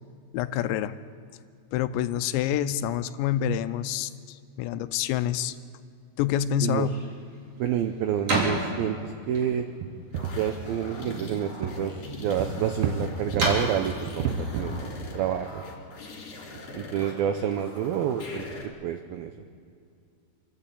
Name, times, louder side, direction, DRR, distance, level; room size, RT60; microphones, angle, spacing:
voice 1, 0.3-1.0 1.7-5.6 6.2-7.0, left 10 dB, 85° left, 12 dB, 2.9 m, -27 dB
sound 1, 6.6-15.8, right 1 dB, 35° right, 4.2 m, -35 dB
voice 2, 7.6-9.7 10.4-15.6 16.7-19.3, right 9 dB, 85° right, 7 dB, 2.1 m, -29 dB
sound 2, 8.5-8.6 8.9-9.0 9.8-10.6 11.1-11.3 11.6-11.8 12.4-13.5 14.1-14.9 15.2-15.3 15.6-15.8 16.4-16.5, right 6 dB, 70° right, 2.8 m, -31 dB
sound 3, 10.1-18.7, left 1 dB, 40° left, 3.9 m, -41 dB
27.0 x 12.0 x 8.4 m, 2.3 s
omnidirectional pair, 5.2 m